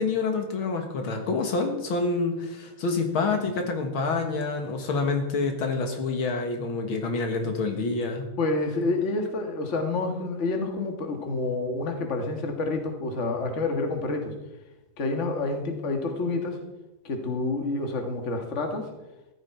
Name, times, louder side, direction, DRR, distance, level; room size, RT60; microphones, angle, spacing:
voice 1, 0.0-8.3, left 3 dB, 75° left, 4 dB, 2.3 m, -27 dB
voice 2, 8.4-14.4 15.0-16.6 17.0-18.9, left 3 dB, 35° left, 4 dB, 1.8 m, -28 dB
14.5 x 12.0 x 4.5 m, 1.0 s
omnidirectional pair, 2.3 m